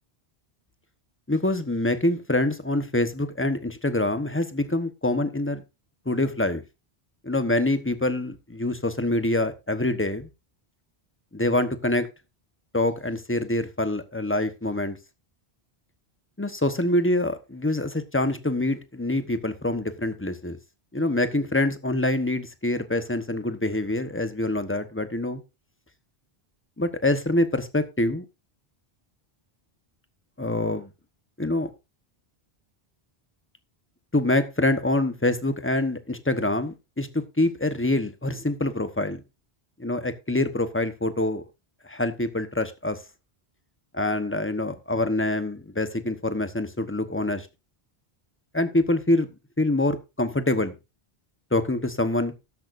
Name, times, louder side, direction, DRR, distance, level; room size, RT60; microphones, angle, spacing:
voice 1, 1.3-5.6 6.1-6.6 7.2-10.3 11.3-12.1 12.7-15.0 16.4-20.6 20.9-25.4 26.8-28.2 30.4-30.9 31.4-31.7 34.1-39.2 39.8-41.4 41.8-43.0 43.9-47.5 48.5-49.3 49.6-50.7 51.5-52.3, left 1 dB, 15° left, 1.0 m, -25 dB
13.0 x 10.5 x 2.6 m
omnidirectional pair, 1.1 m